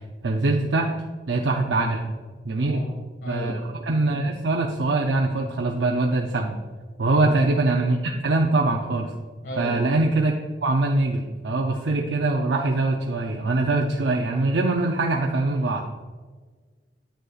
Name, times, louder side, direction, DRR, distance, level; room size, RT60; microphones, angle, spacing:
voice 1, 0.2-0.9 1.3-2.0 2.4-2.8 3.3-6.6 7.0-9.1 9.6-10.3 10.6-15.9, right 2 dB, 85° right, 0 dB, 0.6 m, -23 dB
voice 2, 2.6-3.7 7.1-7.4 9.4-9.8, left 1 dB, 85° left, -2 dB, 1.8 m, -33 dB
9.3 x 6.6 x 2.4 m, 1.4 s
head